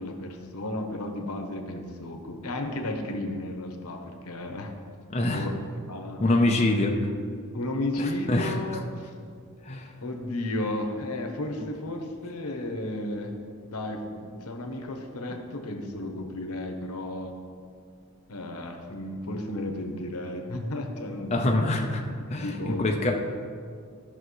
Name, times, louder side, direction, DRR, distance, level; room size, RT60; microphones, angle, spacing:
voice 1, 0.0-4.7 5.3-6.5 7.5-8.8 10.0-13.3 13.7-17.3 18.3-21.5 22.4-22.9, left 1 dB, 90° left, 4 dB, 1.0 m, -33 dB
voice 2, 5.1-5.5 6.2-6.9 8.0-8.5 9.7-9.9 21.3-22.0 22.3-23.1, left 2 dB, 30° left, 0 dB, 0.7 m, -25 dB
13.5 x 5.7 x 3.2 m, 2.2 s
head